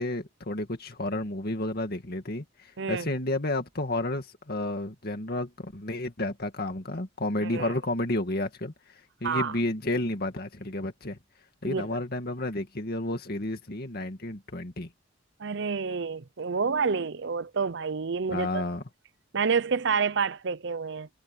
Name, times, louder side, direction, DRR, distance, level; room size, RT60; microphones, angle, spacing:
voice 1, 0.0-8.7 9.2-11.2 11.6-14.9 18.3-18.8, left 1 dB, 50° left, 2.2 m, -31 dB
voice 2, 7.4-7.7 9.2-9.5 11.6-12.0 15.4-18.6 19.3-21.1, right 5 dB, 60° right, 0.7 m, -28 dB
head